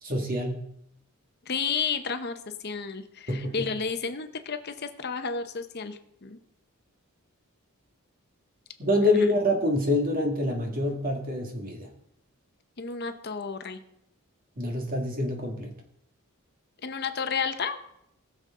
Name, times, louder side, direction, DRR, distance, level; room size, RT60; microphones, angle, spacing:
voice 1, 0.0-0.7 3.3-3.7 8.8-11.9 14.6-15.7, left 1 dB, 40° right, 2 dB, 2.0 m, -26 dB
voice 2, 1.5-6.4 9.1-9.3 12.8-13.8 16.8-17.8, left 5 dB, 45° left, 8 dB, 0.8 m, -32 dB
19.5 x 6.9 x 3.7 m, 0.76 s
head